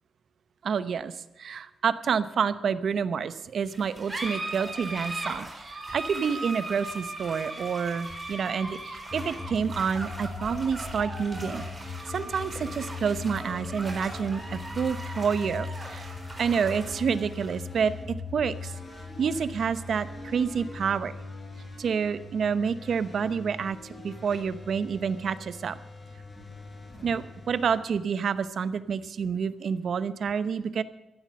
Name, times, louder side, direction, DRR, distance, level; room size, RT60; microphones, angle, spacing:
voice 1, 0.6-11.6 12.1-16.1 16.4-18.7 19.2-21.1 21.8-25.8 27.0-30.8, right 6 dB, 65° right, 14 dB, 0.8 m, -28 dB
sound 1, 3.6-20.6, right 2 dB, 20° right, 3.8 m, -39 dB
sound 2, 9.1-28.7, left 3 dB, 30° left, 4.3 m, -41 dB
15.0 x 12.0 x 6.4 m, 1.0 s
wide cardioid pair, 120°, 0 cm